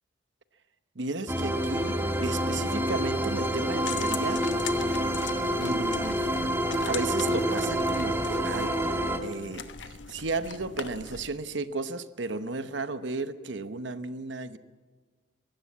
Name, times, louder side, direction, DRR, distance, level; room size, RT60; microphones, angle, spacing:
voice 1, 1.0-4.5 5.6-6.2 6.7-8.9 9.2-14.6, right 3 dB, 70° right, 12 dB, 1.0 m, -34 dB
sound 1, 1.3-9.2, equal, 10° right, 1.7 m, -28 dB
sound 2, 3.8-11.3, left 6 dB, 70° left, 1.2 m, -41 dB
22.0 x 17.0 x 8.5 m, 1.4 s
head